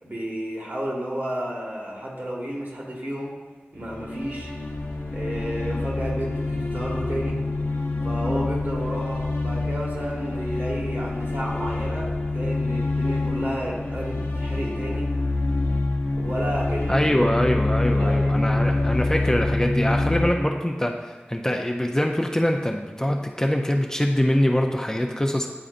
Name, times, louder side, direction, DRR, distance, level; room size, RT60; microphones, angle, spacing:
voice 1, 0.0-3.3 3.7-4.5 5.1-7.4 8.0-15.1 16.2-17.1 17.8-19.0, equal, 50° right, -3 dB, 1.5 m, -32 dB
sound 1, 3.8-20.3, left 2 dB, 75° left, 0.7 m, -26 dB
voice 2, 16.9-25.5, left 1 dB, 15° left, 2 dB, 0.4 m, -23 dB
9.7 x 3.8 x 2.5 m, 1.3 s
wide cardioid pair, 50°, 4 cm